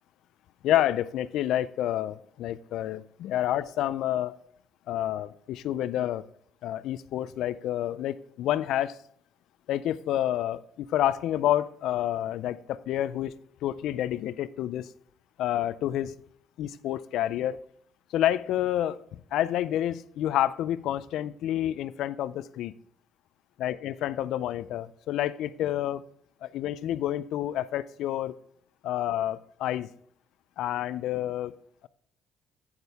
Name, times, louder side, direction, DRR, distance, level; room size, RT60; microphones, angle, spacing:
voice 1, 0.6-4.4 4.9-6.3 6.6-9.0 9.7-13.3 13.6-14.9 15.4-16.1 16.6-17.6 18.1-19.0 19.3-22.7 23.6-26.0 26.4-28.3 28.8-29.9 30.6-31.5, left 12 dB, 75° left, 16 dB, 0.4 m, -29 dB
8.7 x 8.0 x 3.5 m, 0.65 s
cardioid pair, 85°, 0 cm